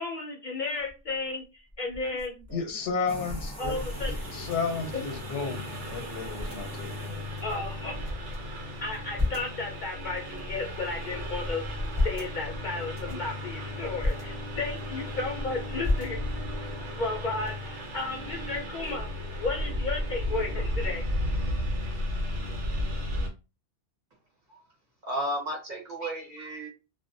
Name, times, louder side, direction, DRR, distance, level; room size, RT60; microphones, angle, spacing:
voice 1, 0.0-1.4 1.8-2.3 3.6-4.1 4.9-5.0 7.4-8.0 8.8-11.6 12.0-16.2 17.0-19.1 19.4-21.0, left 3 dB, 60° left, 0 dB, 0.5 m, -33 dB
sound 1, 0.8-1.2 1.7-5.4 5.7-5.8 6.1-6.6 7.3-8.4 8.8-9.6 10.2-11.1 11.6-12.3 12.9-13.3 13.8-14.2 14.7-15.4 15.8-16.5, left 2 dB, 20° right, 1.1 m, -33 dB
voice 2, 2.5-3.8 4.0-7.3, left 5 dB, 90° left, 5 dB, 1.0 m, -33 dB
sound 2, 3.1-7.9, right 1 dB, 5° left, 0.7 m, -45 dB
Engine, 3.7-23.3, left 1 dB, 85° right, 1.1 m, -34 dB
voice 3, 25.0-26.7, right 1 dB, 45° right, -1 dB, 0.9 m, -33 dB
2.4 x 2.0 x 2.6 m, 0.29 s
omnidirectional pair, 1.2 m